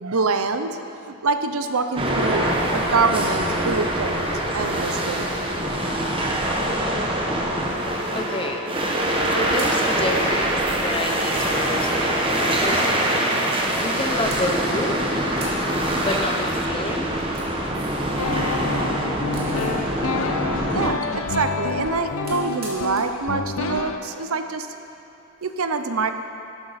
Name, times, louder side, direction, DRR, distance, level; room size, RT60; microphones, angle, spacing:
voice 1, 0.0-0.8 1.1-5.3 20.1-20.2 20.7-24.7 25.4-26.1, right 4 dB, 80° right, 8 dB, 0.7 m, -25 dB
sound 1, 2.0-20.9, right 1 dB, 25° right, 1.1 m, -24 dB
sound 2, 8.0-8.6 9.3-10.0 10.7-10.8 11.2-12.2 13.5-14.0 14.3-14.9 15.3-15.7 16.0-16.1 17.0-18.1 18.4-19.8 21.2-23.2 23.5-23.6 25.3-25.5, right 2 dB, 45° right, 2.4 m, -42 dB
voice 2, 8.1-8.7 9.3-12.8 13.7-15.2 16.0-17.1, left 1 dB, 25° left, 3 dB, 0.8 m, -29 dB
sound 3, 18.2-24.0, left 4 dB, 75° left, 0.7 m, -28 dB
13.0 x 12.0 x 4.2 m, 2.7 s
head